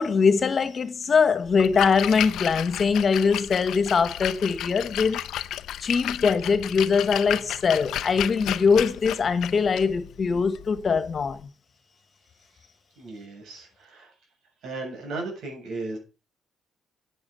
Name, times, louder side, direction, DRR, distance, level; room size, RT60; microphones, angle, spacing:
voice 1, 0.0-5.2 5.8-11.4, left 5 dB, 45° left, 1.7 m, -22 dB
Splash splatter, 1.5-11.4, left 12 dB, 80° left, 0.7 m, -33 dB
voice 2, 13.0-14.1 14.6-16.0, right 3 dB, 75° right, 7.5 m, -35 dB
9.5 x 9.1 x 5.5 m
cardioid pair, 90°, 0 cm